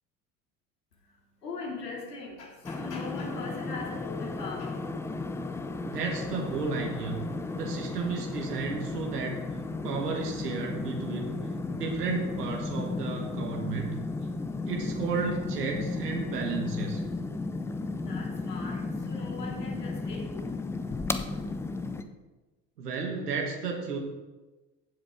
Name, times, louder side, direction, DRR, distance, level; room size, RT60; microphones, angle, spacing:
voice 1, 1.4-4.9 18.1-20.5, left 4 dB, 80° left, -2 dB, 2.6 m, -40 dB
sound 1, 2.6-22.0, left 3 dB, 5° left, 0.3 m, -34 dB
voice 2, 5.8-7.2 7.5-9.4 9.8-14.0 14.7-17.0 22.8-24.0, right 5 dB, 75° right, 1 dB, 1.5 m, -33 dB
15.0 x 7.5 x 3.6 m, 1.2 s
figure-of-eight pair, 65°, 47 cm